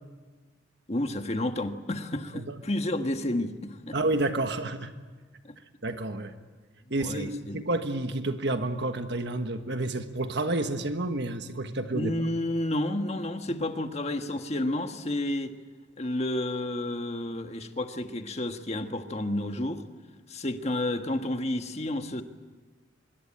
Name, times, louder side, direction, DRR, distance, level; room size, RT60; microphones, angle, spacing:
voice 1, 0.9-4.0 5.4-5.5 7.0-7.6 11.9-15.5 16.0-19.8 20.3-22.2, left 1 dB, 35° left, 6 dB, 1.5 m, -31 dB
voice 2, 3.9-4.9 5.8-6.3 6.9-12.1 13.5-13.6, right 2 dB, 60° right, 7 dB, 1.5 m, -30 dB
25.0 x 23.0 x 8.9 m, 1.3 s
head